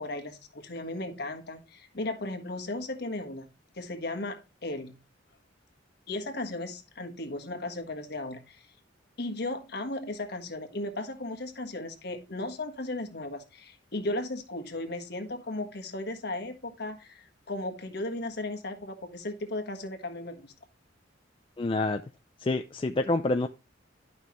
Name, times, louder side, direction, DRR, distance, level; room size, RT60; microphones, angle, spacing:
voice 1, 0.0-3.5 3.7-5.0 6.1-8.7 9.2-20.5, left 2 dB, 55° left, 5 dB, 1.4 m, -36 dB
voice 2, 21.6-22.0 22.4-23.5, left 2 dB, 25° left, 6 dB, 0.4 m, -27 dB
11.5 x 5.5 x 3.1 m, 0.29 s
head